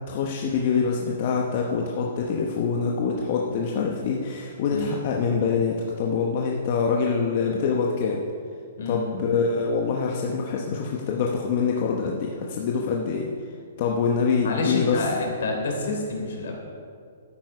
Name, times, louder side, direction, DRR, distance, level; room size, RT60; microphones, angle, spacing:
voice 1, 0.1-8.2 8.9-13.3 13.8-15.0, left 5 dB, 35° left, -1 dB, 0.9 m, -25 dB
voice 2, 14.4-16.6, left 3 dB, 65° left, 0 dB, 3.4 m, -28 dB
12.5 x 9.5 x 4.9 m, 2.2 s
hypercardioid pair, 170°, 0 cm